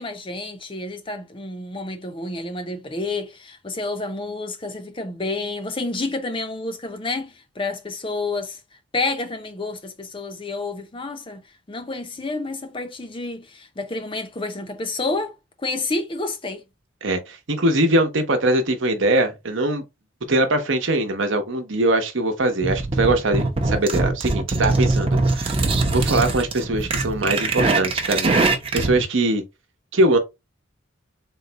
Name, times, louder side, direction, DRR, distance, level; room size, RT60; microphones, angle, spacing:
voice 1, 0.0-8.6 8.9-11.4 11.7-15.4 15.6-16.6, left 3 dB, 25° left, 0.5 m, -29 dB
voice 2, 17.0-19.8 20.3-25.6 25.9-28.4 28.7-29.4 29.9-30.2, right 1 dB, 60° right, 0.9 m, -22 dB
sound 1, 22.6-29.0, right 3 dB, 25° right, 0.6 m, -22 dB
3.9 x 2.2 x 3.9 m
head